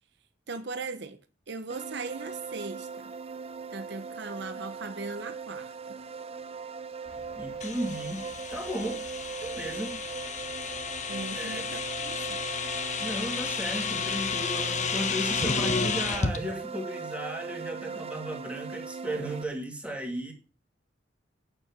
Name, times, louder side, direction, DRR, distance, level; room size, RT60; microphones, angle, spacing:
voice 1, 0.5-1.2 1.5-3.1 3.7-6.0 11.1-12.4, right 3 dB, 65° right, 1.0 m, -39 dB
sound 1, 1.7-19.4, right 5 dB, 35° right, 0.5 m, -40 dB
sound 2, 7.0-15.9, left 1 dB, 60° left, 2.3 m, -53 dB
voice 2, 7.4-9.1 9.4-10.0 11.4-11.6 13.0-20.3, right 1 dB, 5° right, 2.5 m, -35 dB
sound 3, 7.6-16.4, left 5 dB, 40° left, 1.3 m, -32 dB
8.9 x 7.2 x 7.1 m
head